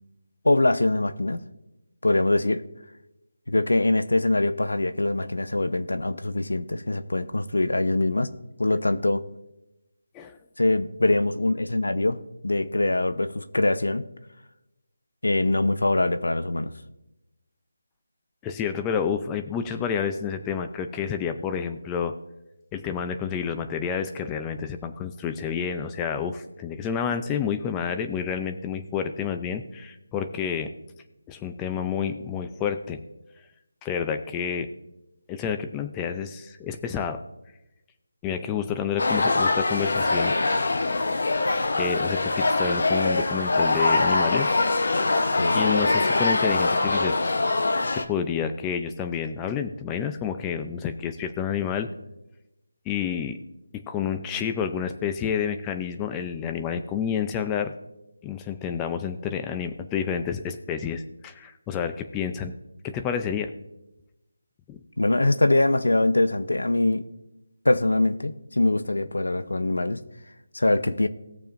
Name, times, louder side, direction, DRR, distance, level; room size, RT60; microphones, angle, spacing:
voice 1, 0.4-1.4 2.0-2.6 3.5-8.3 8.6-9.2 10.6-14.0 15.2-16.7 45.4-45.6 65.0-67.1 67.6-70.0 70.5-71.1, left 2 dB, 90° left, 11 dB, 0.9 m, -23 dB
voice 2, 18.4-22.1 22.7-30.7 31.3-33.0 33.8-34.7 35.3-37.2 38.2-40.4 41.8-44.5 45.5-47.2 47.9-51.9 52.9-53.4 53.7-57.7 58.2-62.5 62.8-63.5 64.7-64.8, left 7 dB, 10° left, 8 dB, 0.5 m, -29 dB
sound 1, 39.0-48.0, left 2 dB, 55° left, 0.9 m, -23 dB
19.5 x 6.9 x 2.6 m, 0.96 s
figure-of-eight pair, 170°, 0 cm